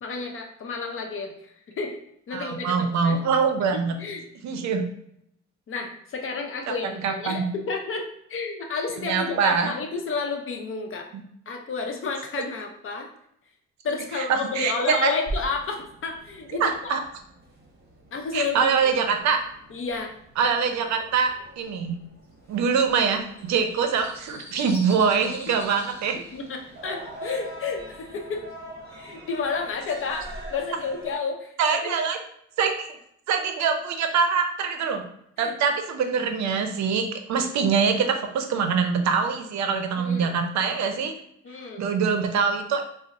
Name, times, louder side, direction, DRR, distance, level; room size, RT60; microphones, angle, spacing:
voice 1, 0.0-2.0 2.3-3.2 3.7-4.2 5.7-11.1 11.5-13.1 13.8-16.9 18.1-18.8 19.7-20.1 26.3-28.4 28.9-31.5 31.8-31.9 35.4-35.5 37.4-37.7 40.0-40.4 41.4-41.9, left 4 dB, 45° left, 3 dB, 0.6 m, -31 dB
voice 2, 2.3-4.0 4.4-4.8 6.8-7.4 9.0-9.7 14.1-14.2 14.5-15.1 16.6-17.0 18.3-19.4 20.4-22.0 22.5-26.2 31.6-32.2 32.6-33.0 33.3-35.0 35.4-37.0 37.3-41.1 41.8-42.9, right 6 dB, 65° right, 6 dB, 0.5 m, -24 dB
sound 1, 15.3-31.2, right 1 dB, 30° right, 0.9 m, -43 dB
sound 2, 22.4-27.6, equal, 10° left, 0.8 m, -46 dB
3.9 x 2.0 x 2.6 m, 0.72 s
cardioid pair, 90°, 30 cm